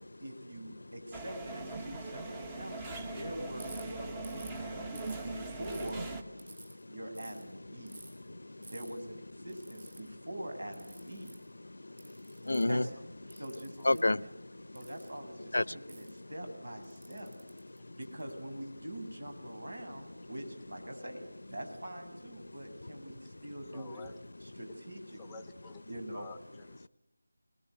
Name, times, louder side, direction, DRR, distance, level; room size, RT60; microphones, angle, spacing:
voice 1, 0.2-4.9 5.2-6.1 6.9-8.0 8.7-11.3 12.7-12.9 13.4-14.3 14.7-17.3 18.0-21.2 21.5-24.0 24.6-25.4 25.9-26.2, right 1 dB, 70° right, 7.3 m, -44 dB
sound 1, 1.1-6.2, right 3 dB, 15° right, 1.4 m, -41 dB
voice 2, 2.6-3.0 4.5-5.1 6.4-7.0 7.5-8.7 10.0-10.1 11.6-12.8 13.2-13.4 13.8-14.8 15.5-16.0 17.8-18.0 20.2-20.3 22.4-23.4, left 2 dB, 70° left, 0.9 m, -35 dB
Ratchet pawl, 3.6-3.8 4.2-4.6 5.0-5.9 6.4-6.7 7.1-7.4 7.9-8.1 8.6-8.9 9.5-10.0 10.7-11.4 12.0-12.8 13.3-14.0 14.7-15.1 15.9-16.1 16.8-18.3, right 2 dB, 50° right, 7.8 m, -51 dB
voice 3, 23.7-24.2 25.1-26.9, left 4 dB, 10° left, 1.1 m, -51 dB
26.5 x 20.5 x 9.5 m
figure-of-eight pair, 165°, 0 cm